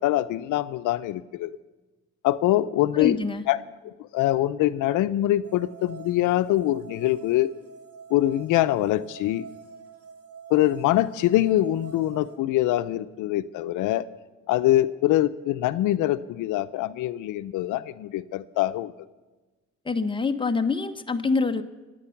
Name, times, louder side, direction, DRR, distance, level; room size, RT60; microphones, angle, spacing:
voice 1, 0.0-1.6 2.2-3.2 3.5-3.6 3.8-7.5 8.1-9.5 10.5-14.0 14.5-18.9, left 14 dB, 85° left, 13 dB, 0.6 m, -24 dB
voice 2, 2.9-3.4 19.8-21.6, left 4 dB, 15° left, 6 dB, 1.2 m, -25 dB
sound 1, 5.4-12.3, right 6 dB, 50° right, 3.2 m, -46 dB
25.5 x 9.2 x 5.8 m, 1.2 s
cardioid pair, 90°, 30 cm